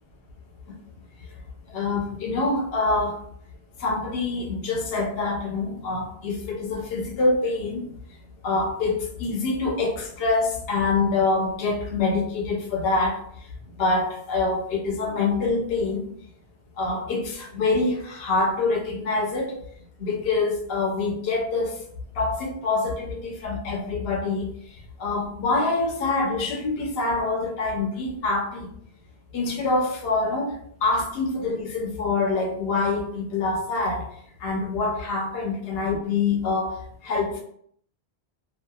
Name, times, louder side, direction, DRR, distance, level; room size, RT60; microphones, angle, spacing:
voice 1, 1.7-3.2 3.8-7.8 8.4-13.2 13.8-16.1 16.8-19.6 20.0-21.7 22.2-24.5 25.0-28.7 29.3-30.5 30.8-34.1 34.4-36.7 37.0-37.4, left 3 dB, 70° left, 0 dB, 0.9 m, -25 dB
2.8 x 2.4 x 2.2 m, 0.64 s
omnidirectional pair, 1.1 m